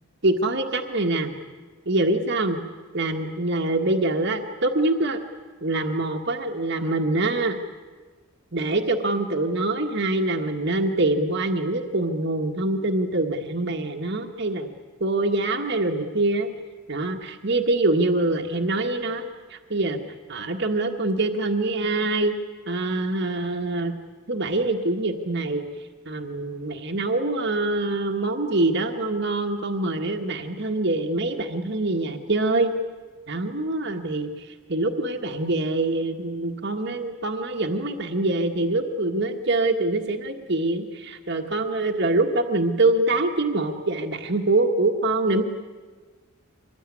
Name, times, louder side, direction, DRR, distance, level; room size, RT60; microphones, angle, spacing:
voice 1, 0.2-1.3 1.8-2.6 2.9-5.2 5.6-7.6 8.5-14.7 15.0-16.5 16.9-20.0 20.3-22.3 22.7-23.9 24.3-25.6 26.1-32.7 33.3-45.4, right 2 dB, 55° right, 3 dB, 1.5 m, -24 dB
25.0 x 19.5 x 9.8 m, 1.4 s
head